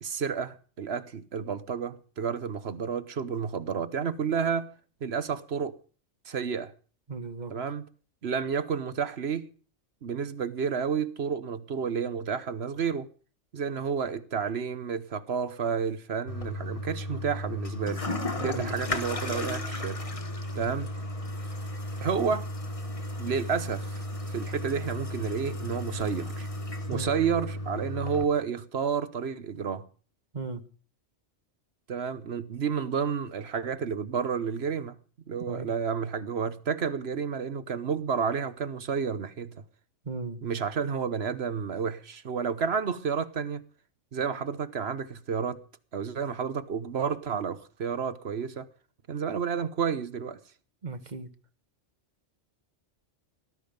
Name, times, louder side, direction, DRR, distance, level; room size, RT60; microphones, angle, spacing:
voice 1, 0.0-4.7 5.0-5.8 6.2-6.7 7.5-7.8 8.2-9.4 10.0-13.1 13.5-18.0 18.4-20.0 20.5-20.9 22.0-22.5 23.2-24.0 24.3-26.5 26.9-29.9 31.9-35.0 35.3-39.6 40.4-43.6 44.1-45.6 45.9-48.7 49.1-50.4, right 6 dB, 60° right, 1.2 m, -30 dB
voice 2, 7.1-7.5 18.4-18.7 26.9-27.2 30.3-30.6 35.4-35.7 40.0-40.4 50.8-51.3, right 3 dB, 40° right, 1.5 m, -36 dB
Toilet flush, 16.3-28.2, left 1 dB, 30° left, 1.5 m, -34 dB
18.5 x 12.5 x 5.3 m
omnidirectional pair, 1.2 m